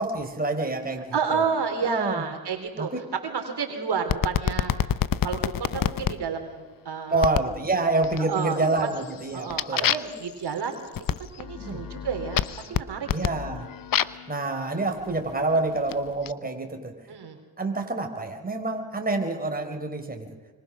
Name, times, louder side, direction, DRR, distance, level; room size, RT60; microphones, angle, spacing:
voice 1, 0.0-1.4 1.8-2.2 2.8-3.0 7.1-9.9 11.6-11.8 13.1-13.7 14.3-16.9 17.6-20.3, right 2 dB, 20° right, 3 dB, 4.3 m, -27 dB
voice 2, 1.1-2.9 3.2-4.9 5.2-7.4 8.3-8.9 9.3-10.8 11.2-13.1 17.1-17.4, right 6 dB, 50° right, 5 dB, 3.7 m, -30 dB
sound 1, 4.1-6.2 7.2-7.6 8.0-8.5 8.9-14.3 15.1-16.3, left 9 dB, 45° left, 1.0 m, -28 dB
26.0 x 25.0 x 6.3 m, 1.3 s
supercardioid pair, 65°, 49 cm